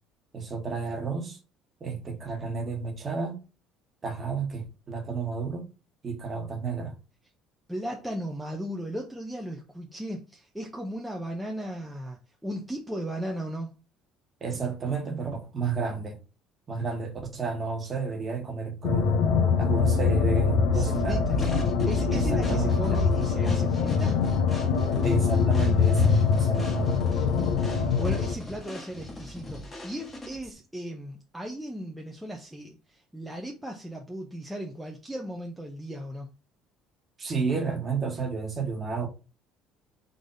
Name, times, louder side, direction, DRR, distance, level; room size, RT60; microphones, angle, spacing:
voice 1, 0.3-1.4 1.8-3.4 4.0-5.7 6.0-7.0 14.4-16.2 16.7-19.2 19.6-21.4 22.1-23.0 25.0-26.9 37.2-39.1, right 5 dB, 25° right, 1.3 m, -31 dB
voice 2, 7.7-13.8 20.7-21.4 21.9-24.2 27.7-36.3, equal, 5° right, 0.7 m, -36 dB
sound 1, 18.8-28.3, left 5 dB, 75° left, 0.8 m, -24 dB
sound 2, 21.4-30.5, left 1 dB, 15° left, 1.4 m, -41 dB
3.9 x 3.4 x 3.9 m
cardioid pair, 150°, 0 cm